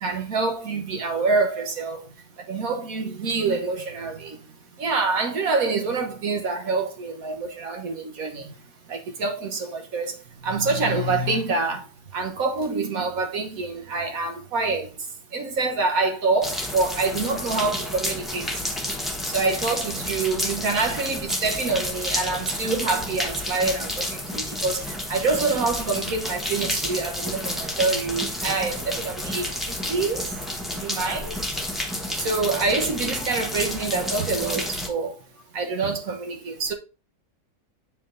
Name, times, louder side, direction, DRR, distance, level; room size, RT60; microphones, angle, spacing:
voice 1, 0.0-2.1 2.5-4.4 4.8-8.5 8.9-10.2 10.4-11.8 12.1-14.9 15.3-18.5 19.3-29.5 29.9-30.3 30.8-31.3 32.2-35.2 35.5-36.7, right 3 dB, 65° right, 1.4 m, -26 dB
sound 1, 16.4-34.9, left 1 dB, ahead, 0.8 m, -30 dB
7.6 x 4.6 x 3.8 m
omnidirectional pair, 1.6 m